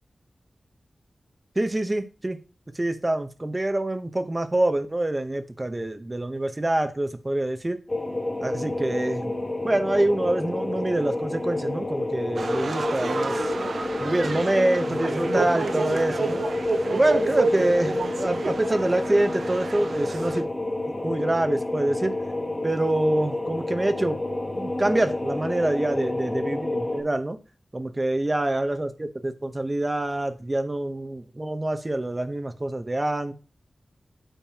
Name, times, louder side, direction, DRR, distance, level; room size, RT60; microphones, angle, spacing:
voice 1, 1.6-2.4 2.7-7.8 8.4-9.4 9.6-13.4 14.0-16.4 16.9-20.5 21.0-22.2 22.6-24.2 24.5-27.4 27.7-33.3, right 1 dB, 25° right, 0.9 m, -26 dB
sound 1, 7.9-27.0, left 2 dB, 25° left, 2.3 m, -29 dB
sound 2, 12.4-20.4, right 4 dB, 75° right, 0.6 m, -31 dB
9.1 x 6.6 x 2.9 m
wide cardioid pair, 100°, 0 cm